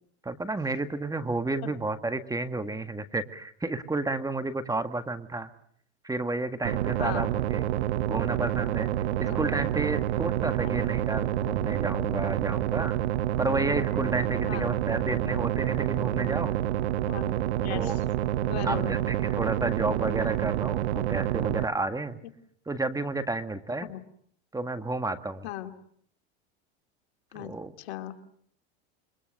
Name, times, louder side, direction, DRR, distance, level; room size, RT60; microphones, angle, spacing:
voice 1, 0.2-5.5 6.0-7.7 8.1-8.9 9.2-13.0 13.4-16.5 17.7-18.0 18.6-22.2 22.6-23.9 24.5-25.5 27.3-27.7, right 2 dB, 10° right, 9 dB, 1.8 m, -31 dB
sound 1, 6.6-21.7, right 12 dB, 85° right, 1.1 m, -28 dB
voice 2, 17.1-18.0 18.5-18.9 23.8-24.0 25.4-25.7 27.3-27.5 27.8-28.1, left 14 dB, 75° left, 6 dB, 2.8 m, -37 dB
27.5 x 24.0 x 6.6 m, 0.63 s
supercardioid pair, 105°, 32 cm